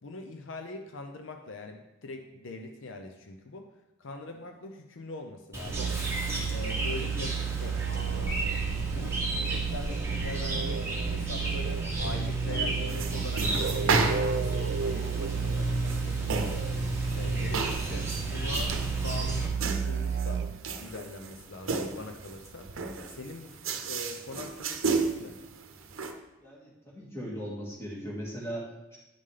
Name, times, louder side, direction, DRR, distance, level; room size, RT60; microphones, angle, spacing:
voice 1, 0.0-3.7 4.0-5.9 6.5-8.5 8.9-20.5 20.8-22.7 23.1-25.4, left 2 dB, 70° left, 5 dB, 0.6 m, -43 dB
Chirp tweet, 5.5-19.5, right 1 dB, 10° right, 1.1 m, -33 dB
Musical instrument, 5.7-20.7, right 7 dB, 55° right, 0.4 m, -32 dB
sound 1, 12.9-26.1, right 4 dB, 85° right, 0.7 m, -34 dB
voice 2, 26.4-29.0, equal, 10° left, -6 dB, 1.7 m, -38 dB
9.8 x 5.5 x 3.3 m, 0.98 s
head